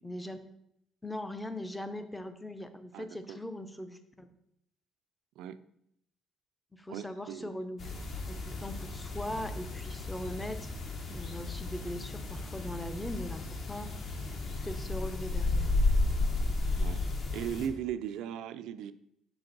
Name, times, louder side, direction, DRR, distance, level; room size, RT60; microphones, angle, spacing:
voice 1, 0.0-0.4 1.0-4.3 6.7-10.7 11.1-13.9 14.6-15.7, left 1 dB, 10° left, 9 dB, 0.5 m, -40 dB
voice 2, 2.9-3.4 5.4-5.6 6.9-7.5 16.7-17.0 17.3-18.9, right 9 dB, 80° right, 13 dB, 0.3 m, -38 dB
sound 1, 7.8-17.7, left 2 dB, 45° left, 0.9 m, -33 dB
5.9 x 5.2 x 3.9 m, 0.75 s
cardioid pair, 130°, 0 cm